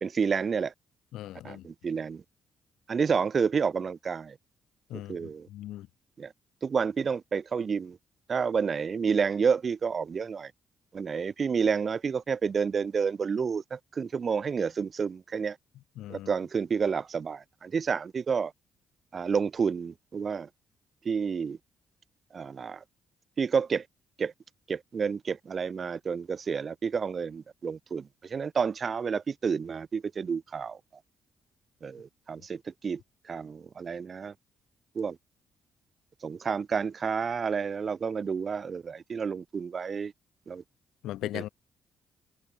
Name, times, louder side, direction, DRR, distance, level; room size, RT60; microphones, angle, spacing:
voice 1, 0.0-0.7 1.4-2.2 2.9-4.4 4.9-5.5 6.2-6.3 6.6-8.0 8.3-10.5 10.9-15.6 16.1-18.5 19.1-20.5 21.0-21.6 22.3-22.8 23.4-23.9 24.2-24.3 24.7-30.8 31.8-34.3 34.9-35.2 36.2-40.1 40.5-40.6 41.3-41.5, right 6 dB, 45° right, 0.9 m, -30 dB
voice 2, 1.1-1.6 4.9-5.9 16.0-16.3 41.0-41.5, left 14 dB, 85° left, 1.2 m, -38 dB
cardioid pair, 80°, 0 cm